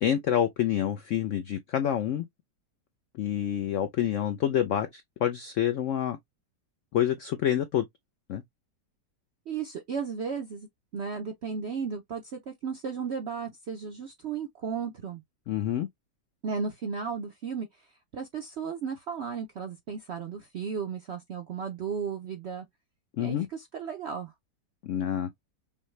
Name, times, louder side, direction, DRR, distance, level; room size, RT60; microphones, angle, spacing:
voice 1, 0.0-2.2 3.2-6.2 6.9-7.8 8.3-8.4 15.5-15.9 23.2-23.5 24.8-25.3, left 10 dB, 85° left, 0.6 m, -27 dB
voice 2, 9.5-15.2 16.4-22.7 23.2-24.3, right 6 dB, 70° right, 0.6 m, -35 dB
5.5 x 2.1 x 3.1 m
omnidirectional pair, 1.9 m